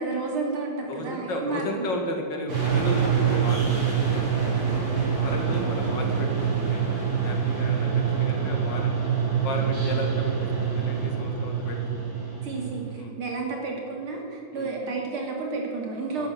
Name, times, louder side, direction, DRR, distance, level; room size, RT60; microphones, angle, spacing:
voice 1, 0.0-2.0 5.2-5.9 12.4-16.3, right 3 dB, 85° right, 0 dB, 3.4 m, -31 dB
voice 2, 0.9-4.3 5.2-8.9 9.4-10.3 10.7-12.1 13.0-13.1 14.5-14.7 16.1-16.3, left 1 dB, 60° left, 2 dB, 2.6 m, -34 dB
sound 1, 2.5-12.9, right 7 dB, 50° right, 4.0 m, -25 dB
11.5 x 10.5 x 7.5 m, 2.7 s
omnidirectional pair, 2.3 m